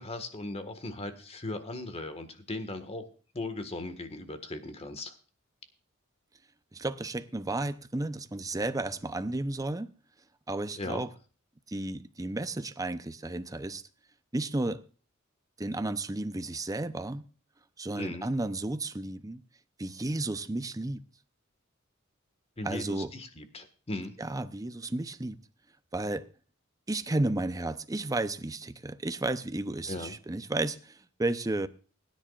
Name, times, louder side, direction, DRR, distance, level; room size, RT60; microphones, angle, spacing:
voice 1, 0.0-3.0 3.3-5.1 10.7-11.0 18.0-18.3 22.6-24.1 29.9-30.2, left 2 dB, 30° left, 1.6 m, -38 dB
voice 2, 6.7-9.9 10.5-11.1 11.7-13.8 14.3-14.8 15.6-17.3 17.8-19.4 19.8-21.0 22.6-23.1 24.2-25.4 25.9-26.3 26.9-31.7, right 2 dB, 15° right, 0.7 m, -33 dB
20.5 x 10.0 x 2.4 m
head